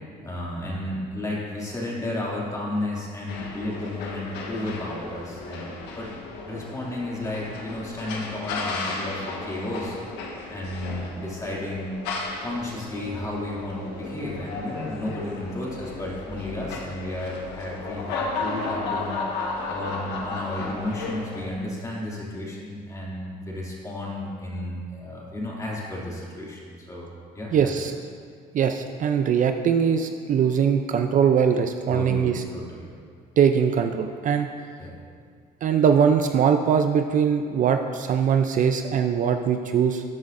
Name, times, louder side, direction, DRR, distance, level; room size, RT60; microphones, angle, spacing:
voice 1, 0.2-6.1 6.4-10.0 10.5-11.9 12.4-19.2 19.7-27.1 27.3-27.7 31.9-32.9 34.8-35.0, left 1 dB, 20° left, -5 dB, 2.5 m, -33 dB
sound 1, 3.3-21.5, left 3 dB, 90° left, 1.3 m, -34 dB
voice 2, 27.5-27.9 28.5-32.4 33.4-34.5 35.6-40.0, right 7 dB, 50° right, 6 dB, 0.5 m, -21 dB
13.0 x 9.3 x 2.6 m, 2.1 s
cardioid pair, 110°, 17 cm